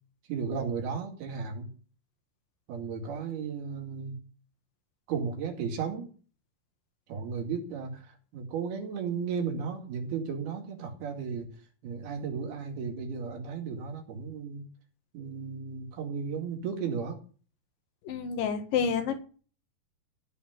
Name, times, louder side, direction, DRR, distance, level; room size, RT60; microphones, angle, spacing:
voice 1, 0.3-1.7 2.7-4.2 5.1-6.1 7.1-11.5 11.8-14.6 15.1-17.2, right 6 dB, 90° right, 2 dB, 4.2 m, -34 dB
voice 2, 18.1-19.2, left 7 dB, 70° left, 5 dB, 3.4 m, -29 dB
15.0 x 5.9 x 9.2 m, 0.39 s
omnidirectional pair, 4.3 m